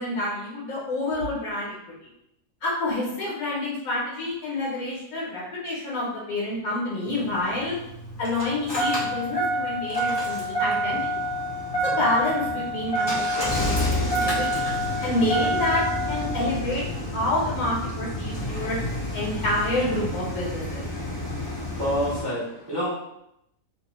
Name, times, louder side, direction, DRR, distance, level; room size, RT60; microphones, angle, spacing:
voice 1, 0.0-1.7 2.6-7.7 8.2-11.3 11.8-13.1 13.4-13.8 14.1-14.7 15.0-15.8 16.1-16.8 17.1-18.8 19.1-20.8, left 2 dB, 80° left, -5 dB, 1.2 m, -28 dB
Engine starting, 7.1-22.2, equal, 35° left, 0.4 m, -28 dB
voice 2, 21.3-22.9, equal, 40° right, -8 dB, 0.3 m, -29 dB
2.6 x 2.1 x 2.9 m, 0.81 s
omnidirectional pair, 1.5 m